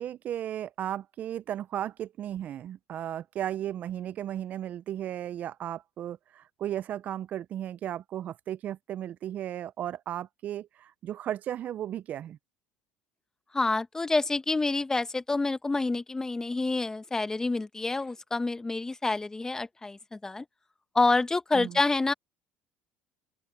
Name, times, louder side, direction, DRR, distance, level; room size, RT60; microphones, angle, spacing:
voice 1, 0.0-12.4 21.5-21.8, right 11 dB, 50° right, 0.5 m, -35 dB
voice 2, 13.5-20.4 20.9-22.1, left 3 dB, 15° left, 1.2 m, -28 dB
open air
supercardioid pair, 85°, 3 cm